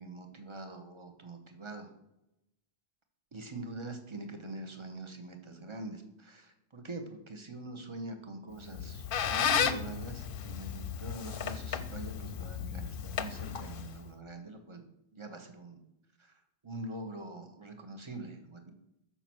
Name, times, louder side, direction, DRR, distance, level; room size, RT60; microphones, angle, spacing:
voice 1, 0.0-1.9 3.3-14.8 15.1-15.8 16.2-18.7, right 2 dB, 30° right, 6 dB, 1.1 m, -44 dB
Squeak, 8.6-14.1, left 8 dB, 60° left, 0.8 m, -34 dB
6.9 x 5.8 x 6.1 m, 0.90 s
omnidirectional pair, 1.1 m